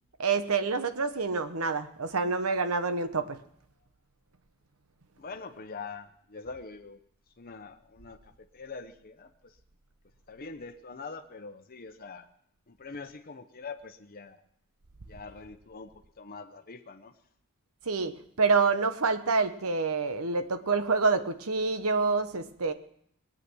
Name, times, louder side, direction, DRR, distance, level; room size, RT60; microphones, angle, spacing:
voice 1, 0.2-3.4 17.9-22.7, right 4 dB, 75° right, 10 dB, 1.1 m, -27 dB
voice 2, 5.2-7.0 7.4-9.5 10.3-12.3 12.7-14.4 15.1-15.9 16.2-17.1, left 4 dB, 45° left, 5 dB, 0.9 m, -44 dB
21.0 x 8.8 x 6.2 m, 0.70 s
head